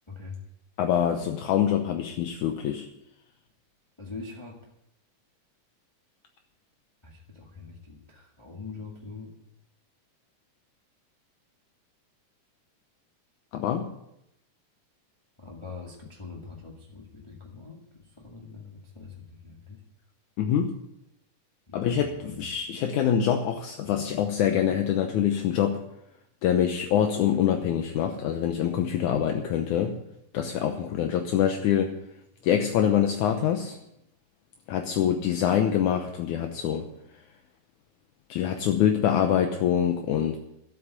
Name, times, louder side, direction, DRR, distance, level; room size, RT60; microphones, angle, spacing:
voice 1, 0.8-2.9 13.5-13.9 20.4-20.8 21.7-25.8 26.4-30.0 30.3-31.9 32.4-33.8 34.7-36.9 38.3-40.4, left 9 dB, 75° left, 5 dB, 2.2 m, -25 dB
voice 2, 4.0-4.6 7.0-9.3 15.4-19.8 21.7-22.4, left 4 dB, 20° left, -2 dB, 0.8 m, -43 dB
12.5 x 8.6 x 8.3 m, 0.82 s
omnidirectional pair, 3.8 m